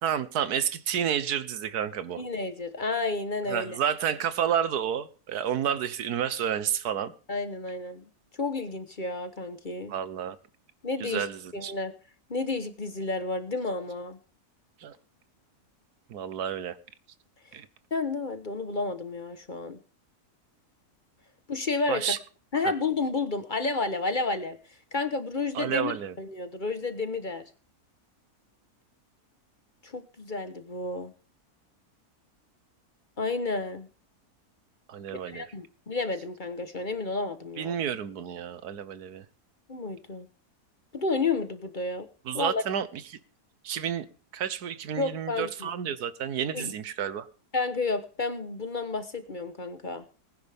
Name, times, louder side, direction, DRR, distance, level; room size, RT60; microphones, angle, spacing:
voice 1, 0.0-2.2 3.5-7.1 9.9-10.4 11.0-11.7 14.8-15.0 16.1-16.8 17.5-17.7 21.9-22.2 22.6-22.7 25.5-26.2 34.9-35.5 37.6-39.2 42.2-43.2 43.6-44.0 44.3-47.3, right 9 dB, 90° right, 14 dB, 1.5 m, -30 dB
voice 2, 2.2-3.8 7.3-8.1 8.4-9.9 10.8-11.2 11.5-11.9 12.3-14.2 17.9-19.8 21.5-22.1 22.5-24.6 24.9-27.4 29.8-31.1 33.2-33.9 35.1-37.7 39.7-40.3 40.9-42.1 42.3-42.6 45.0-45.7 46.5-46.7 47.5-50.0, left 3 dB, 35° left, 10 dB, 1.1 m, -31 dB
19.5 x 10.0 x 3.5 m, 0.38 s
omnidirectional pair, 1.6 m